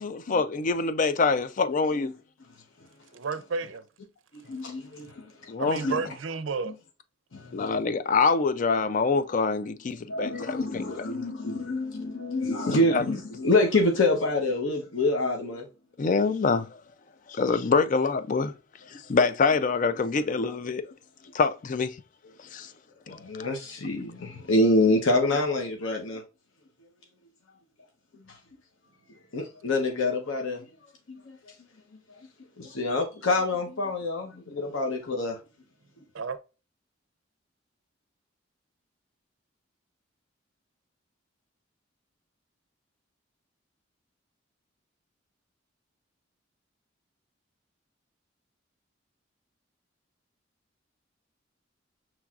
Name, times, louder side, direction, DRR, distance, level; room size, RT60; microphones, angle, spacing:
voice 1, 0.0-2.1 5.5-5.8 7.5-10.6 12.9-13.0 16.0-16.8 17.3-18.5 18.9-20.9 21.3-21.9 22.5-22.7 23.4-23.5, left 4 dB, 40° left, 0.4 m, -25 dB
voice 2, 3.1-3.8 5.6-6.7 36.1-36.4, right 4 dB, 80° right, 0.5 m, -31 dB
voice 3, 4.3-5.3 5.8-5.9 7.3-7.7 10.1-15.7 23.1-26.2 29.3-30.6 31.1-31.4 32.6-35.4, left 2 dB, 90° left, 0.8 m, -26 dB
5.9 x 3.1 x 2.4 m
head